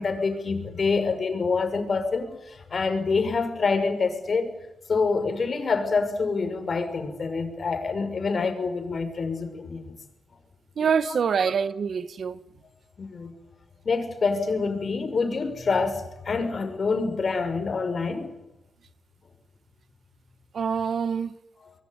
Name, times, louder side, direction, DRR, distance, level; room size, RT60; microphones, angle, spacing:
voice 1, 0.0-4.5 4.9-9.9 11.1-11.5 13.0-13.3 13.8-18.3 21.6-21.7, left 4 dB, 50° left, 6.2 m, -26 dB
voice 2, 10.8-12.4 20.5-21.3, right 6 dB, 65° right, 1.6 m, -25 dB
24.5 x 21.5 x 9.9 m
cardioid pair, 85°, 0 cm